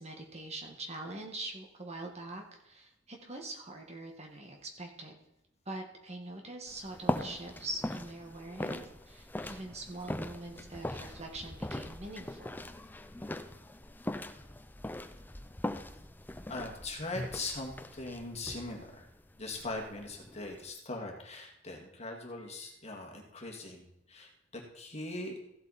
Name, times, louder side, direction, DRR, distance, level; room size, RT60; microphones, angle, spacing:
voice 1, 0.0-5.1 5.6-12.5, right 2 dB, 35° right, 2 dB, 1.7 m, -43 dB
sound 1, 6.7-20.7, left 1 dB, 10° left, 0.6 m, -41 dB
voice 2, 16.5-19.1 19.4-25.3, left 2 dB, 35° left, 1 dB, 2.1 m, -41 dB
15.0 x 8.1 x 4.2 m, 0.80 s
head